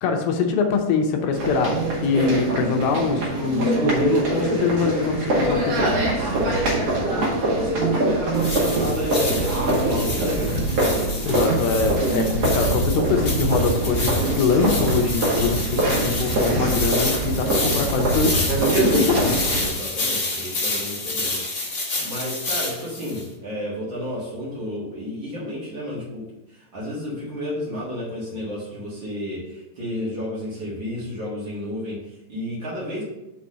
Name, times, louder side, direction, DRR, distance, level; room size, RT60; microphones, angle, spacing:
voice 1, 0.0-5.9 11.3-18.4 18.8-19.4, left 4 dB, 75° left, 3 dB, 2.4 m, -23 dB
sound 1, 1.3-19.7, right 2 dB, 55° right, 1.9 m, -23 dB
voice 2, 6.1-10.7 18.8-33.0, left 1 dB, 85° right, -6 dB, 1.0 m, -31 dB
sound 2, 8.3-23.2, left 3 dB, 40° left, 1.4 m, -29 dB
6.1 x 4.2 x 6.1 m, 0.97 s
omnidirectional pair, 4.7 m